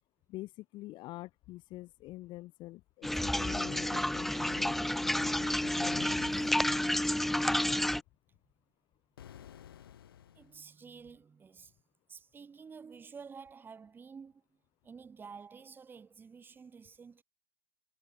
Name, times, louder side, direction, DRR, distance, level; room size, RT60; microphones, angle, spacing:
voice 1, 0.3-6.3 6.6-6.8, left 18 dB, 40° left, 1.9 m, -46 dB
sound 1, 3.0-8.0, left 1 dB, ahead, 0.4 m, -30 dB
sound 2, 6.0-7.4 9.2-10.6, left 10 dB, 90° left, 0.8 m, -53 dB
voice 2, 10.3-11.7 12.1-14.4 14.8-17.2, right 5 dB, 15° right, 2.7 m, -50 dB
hypercardioid pair, 120°, 12 cm